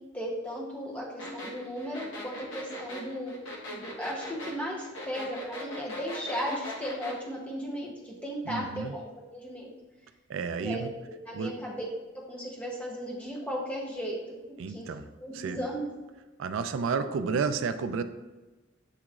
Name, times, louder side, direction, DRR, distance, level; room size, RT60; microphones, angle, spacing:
voice 1, 0.1-3.4 3.7-9.0 9.3-9.7 10.6-10.8 11.3-11.9 12.3-14.9 15.2-15.9, equal, 5° left, -3 dB, 0.8 m, -36 dB
sound 1, 1.2-7.2, left 1 dB, 75° left, 0.9 m, -40 dB
voice 2, 8.5-8.9 10.3-10.9 11.3-11.5 14.6-15.1 15.3-15.6 16.4-18.0, right 5 dB, 85° right, 10 dB, 0.3 m, -31 dB
7.3 x 2.9 x 2.4 m, 1.2 s
head